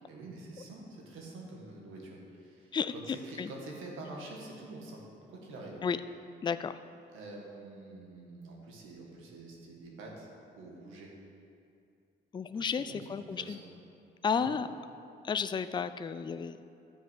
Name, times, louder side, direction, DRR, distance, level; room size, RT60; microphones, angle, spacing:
voice 1, 0.0-5.0 5.3-5.8 7.1-10.3 10.6-11.1 12.4-13.7 14.3-14.5, right 2 dB, 90° right, -1 dB, 1.9 m, -46 dB
voice 2, 6.4-6.8 12.3-13.6 14.2-14.7 15.2-16.6, left 6 dB, 25° left, 12 dB, 0.4 m, -32 dB
11.0 x 5.1 x 7.9 m, 2.5 s
cardioid pair, 90°, 20 cm